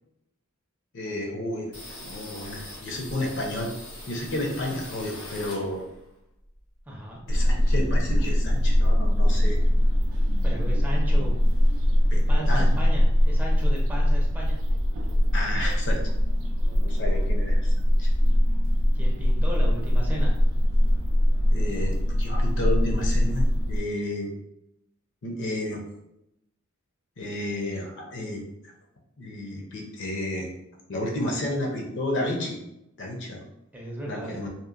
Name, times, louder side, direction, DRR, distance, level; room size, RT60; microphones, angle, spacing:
voice 1, 0.9-3.7 4.1-5.8 7.3-9.6 12.1-12.7 15.3-16.0 16.7-17.7 18.0-18.1 21.5-24.3 25.2-25.8 27.2-28.7 29.2-30.5 30.9-32.6 33.0-33.4 34.1-34.5, left 1 dB, 60° left, 0 dB, 0.6 m, -31 dB
sound 1, 1.7-6.1 6.4-7.8 8.1-8.2 8.4-9.2, left 1 dB, 75° left, 0.9 m, -42 dB
voice 2, 6.9-7.2 10.4-11.4 12.1-14.6 18.9-20.4 33.7-34.3, right 1 dB, 10° right, -3 dB, 0.5 m, -35 dB
sound 2, 7.3-23.8, equal, 70° right, 0.4 m, -22 dB
2.8 x 2.0 x 2.4 m, 0.83 s
head